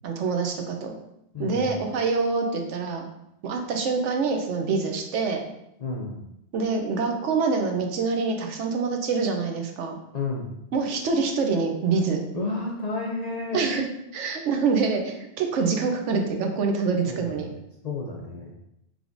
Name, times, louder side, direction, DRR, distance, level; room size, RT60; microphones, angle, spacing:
voice 1, 0.0-1.0 1.4-3.1 3.4-5.5 6.5-10.0 10.7-12.2 13.5-13.8 14.1-17.5, right 4 dB, 80° right, 3 dB, 1.0 m, -25 dB
voice 2, 1.3-1.7 5.8-6.2 10.1-10.5 12.3-13.7 17.1-17.5 17.8-18.5, left 3 dB, 60° left, -2 dB, 0.4 m, -31 dB
4.9 x 3.2 x 2.5 m, 0.81 s
omnidirectional pair, 1.2 m